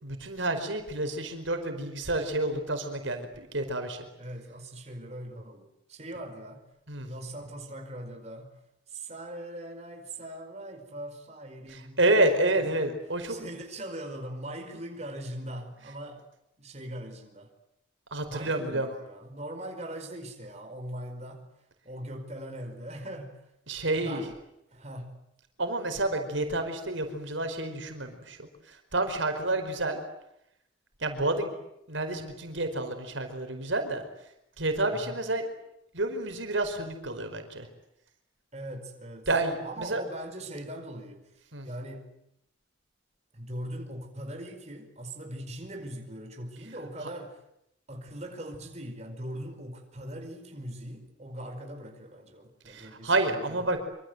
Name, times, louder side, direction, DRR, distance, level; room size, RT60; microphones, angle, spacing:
voice 1, 0.0-4.1 6.9-7.1 11.7-13.5 18.1-18.9 23.7-24.2 25.6-30.0 31.0-31.5 31.9-34.0 34.6-35.4 35.9-37.7 39.3-40.0 41.5-41.7 52.6-53.8, right 2 dB, 85° right, 4.9 m, -29 dB
voice 2, 4.2-6.6 7.0-8.5 8.9-12.0 12.7-12.9 13.3-16.2 16.6-17.5 18.3-21.5 21.8-23.5 24.0-24.3 24.7-25.2 34.9-35.2 38.5-39.3 39.6-41.3 41.6-42.1 43.3-47.4 47.9-53.8, right 1 dB, 35° right, 5.0 m, -41 dB
26.0 x 26.0 x 8.1 m
head